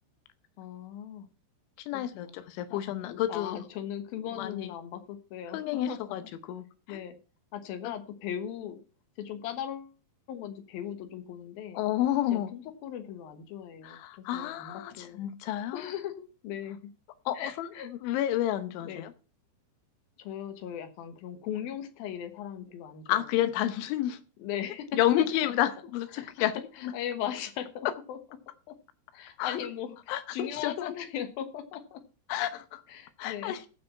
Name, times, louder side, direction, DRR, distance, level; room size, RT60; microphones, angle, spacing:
voice 1, 0.6-1.3 1.9-2.3 2.7-2.8 3.1-6.1 6.9-7.2 7.5-8.8 9.2-9.9 10.3-11.8 12.3-15.2 15.7-16.9 17.3-17.9 18.8-19.0 20.2-23.2 24.4-24.9 25.2-25.3 26.1-26.5 26.8-28.2 28.7-28.8 29.1-32.0 32.9-33.6, left 10 dB, 70° left, 2.5 m, -38 dB
voice 2, 1.8-3.6 4.4-4.7 5.5-7.0 11.7-12.5 13.8-15.8 17.3-19.1 23.1-24.2 24.9-26.9 29.4-29.6 30.1-30.9 32.3-32.8 33.2-33.6, left 12 dB, 85° left, 3.4 m, -30 dB
15.0 x 5.9 x 5.6 m
omnidirectional pair, 5.3 m